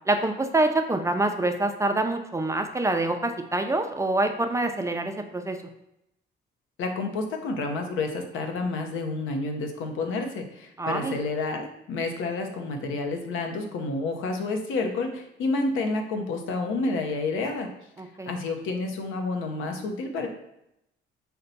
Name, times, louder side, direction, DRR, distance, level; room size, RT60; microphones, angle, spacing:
voice 1, 0.1-5.6 10.8-11.2 18.0-18.3, right 2 dB, 15° right, 5 dB, 0.4 m, -26 dB
voice 2, 6.8-17.7 18.3-20.3, left 3 dB, 85° left, 4 dB, 0.6 m, -29 dB
4.2 x 2.2 x 3.9 m, 0.82 s
cardioid pair, 90°, 20 cm